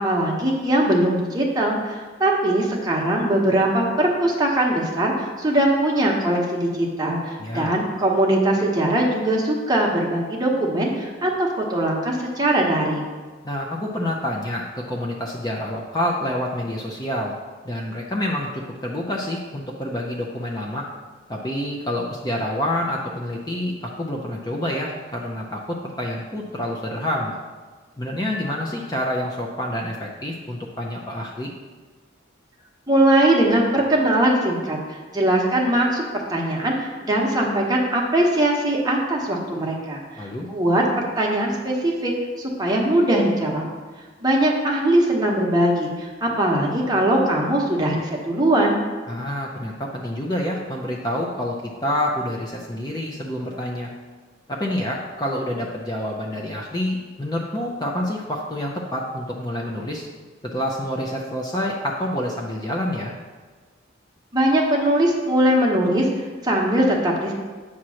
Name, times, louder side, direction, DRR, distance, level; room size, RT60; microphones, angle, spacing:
voice 1, 0.0-13.0 32.9-40.8 41.2-42.1 42.4-43.7 44.2-48.8 64.3-67.3, right 1 dB, 20° right, -2 dB, 1.0 m, -21 dB
voice 2, 7.4-7.7 13.4-17.3 17.6-20.9 21.3-27.4 28.0-31.5 40.2-40.5 49.1-53.9 54.5-60.1 60.5-63.1, left 1 dB, 20° left, -1 dB, 0.5 m, -27 dB
8.4 x 3.0 x 6.2 m, 1.4 s
head